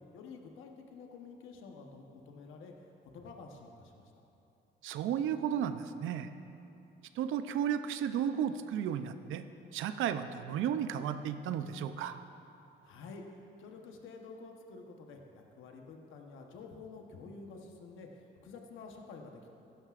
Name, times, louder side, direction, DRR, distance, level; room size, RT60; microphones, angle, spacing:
voice 1, 0.0-4.1 12.8-13.2 13.6-19.5, left 4 dB, 85° left, 2 dB, 1.1 m, -50 dB
voice 2, 4.8-6.3 7.2-9.4 9.7-12.2, right 9 dB, 85° right, 10 dB, 0.6 m, -33 dB
16.0 x 11.5 x 2.5 m, 2.8 s
cardioid pair, 90°, 20 cm